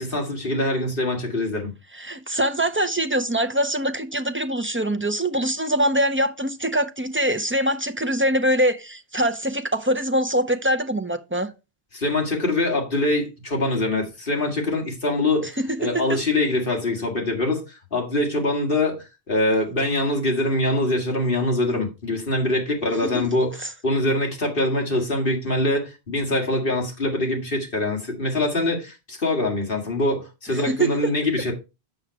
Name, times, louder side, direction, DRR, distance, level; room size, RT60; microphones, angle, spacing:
voice 1, 0.0-1.7 11.9-17.6 17.9-31.5, left 1 dB, 55° left, 2.4 m, -24 dB
voice 2, 1.9-11.5 15.6-15.7 15.9-16.2 23.1-23.2 30.7-31.1, right 1 dB, 20° right, 0.3 m, -23 dB
7.8 x 5.8 x 4.6 m
omnidirectional pair, 1.1 m